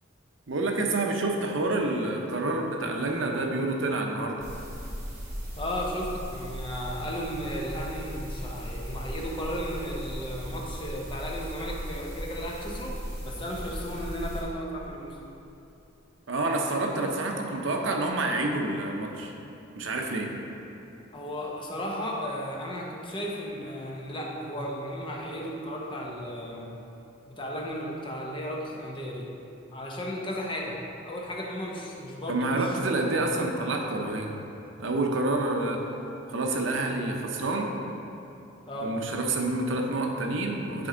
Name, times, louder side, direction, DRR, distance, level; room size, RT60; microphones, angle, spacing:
voice 1, 0.5-4.4 16.3-19.3 19.7-20.3 32.3-34.3 34.8-35.8 36.3-37.7 38.8-40.9, right 2 dB, 70° right, 2 dB, 0.7 m, -28 dB
sound 1, 4.4-14.4, equal, 15° right, 1.7 m, -37 dB
voice 2, 5.6-15.2 21.1-26.8 27.3-29.3 29.7-33.0 38.7-39.0, equal, 25° left, -2 dB, 0.8 m, -35 dB
10.5 x 4.4 x 3.8 m, 2.8 s
head